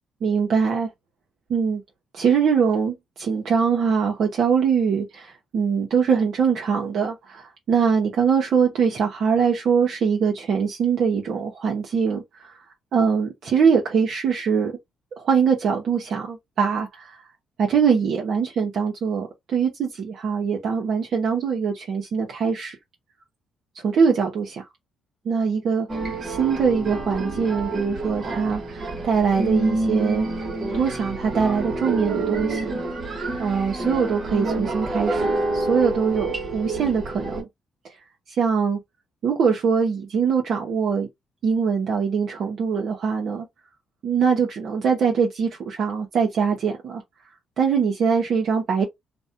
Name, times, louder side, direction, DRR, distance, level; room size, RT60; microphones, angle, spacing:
voice 1, 0.2-0.9 1.5-1.8 2.1-12.6 12.9-14.7 15.2-17.2 17.6-22.8 23.8-24.6 25.2-25.9 26.2-30.3 30.7-32.8 33.4-37.5 38.4-38.8 39.2-41.1 41.4-43.5 44.0-47.0 47.6-48.9, right 6 dB, 65° right, 0.7 m, -22 dB
sound 1, 25.9-37.4, right 2 dB, 45° right, 1.1 m, -27 dB
2.5 x 2.1 x 2.6 m
supercardioid pair, 70°, 0 cm